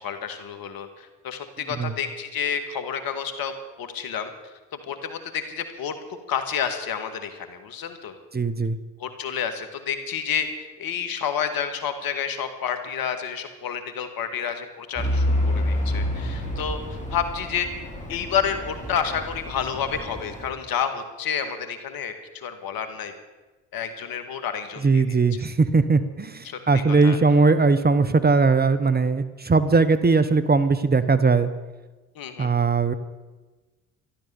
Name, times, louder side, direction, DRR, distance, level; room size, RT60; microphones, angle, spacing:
voice 1, 0.0-3.5 3.8-4.3 4.9-5.9 6.3-8.2 9.0-23.1 23.7-25.0 26.4-27.2 32.2-32.6, left 7 dB, 65° left, 8 dB, 2.0 m, -30 dB
voice 2, 8.3-8.8 24.8-31.5 32.4-32.9, right 4 dB, 25° right, 13 dB, 1.1 m, -20 dB
Truck / Idling, 15.0-20.5, left 1 dB, 20° left, 4.6 m, -28 dB
13.0 x 12.5 x 7.1 m, 1.2 s
hypercardioid pair, 60°, 38 cm